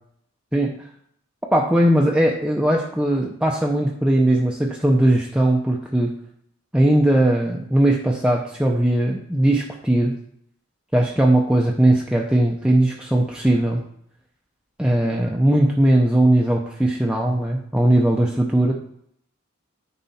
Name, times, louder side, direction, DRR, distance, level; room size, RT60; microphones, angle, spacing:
voice 1, 0.5-0.9 1.5-6.1 6.7-10.1 10.9-13.8 14.8-18.7, right 1 dB, 5° right, 0 dB, 0.6 m, -19 dB
9.3 x 4.2 x 4.2 m, 0.68 s
head